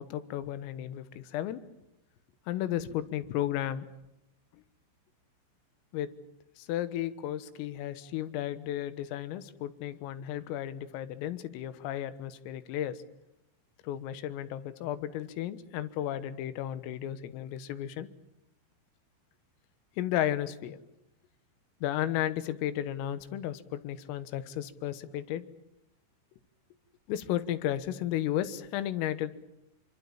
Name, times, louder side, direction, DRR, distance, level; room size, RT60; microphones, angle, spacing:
voice 1, 0.0-1.6 2.5-3.9 5.9-6.1 6.6-13.0 13.8-18.1 20.0-20.8 21.8-25.4 27.1-29.3, left 12 dB, 80° left, 13 dB, 3.9 m, -34 dB
27.0 x 25.5 x 7.3 m, 0.90 s
omnidirectional pair, 5.9 m